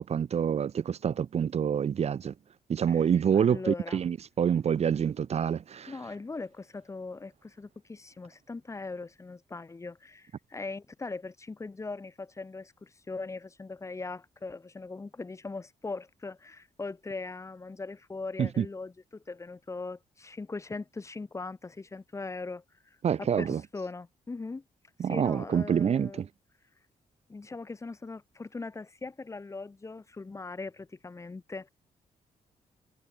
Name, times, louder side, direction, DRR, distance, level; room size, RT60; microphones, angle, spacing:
voice 1, 0.0-2.3 2.7-5.9 18.4-18.7 23.0-23.6 25.0-26.3, right 8 dB, 50° right, 1.0 m, -27 dB
voice 2, 3.3-4.0 5.9-24.6 25.1-26.2 27.3-31.7, left 3 dB, 20° left, 1.5 m, -40 dB
wide cardioid pair, 150°, 14 cm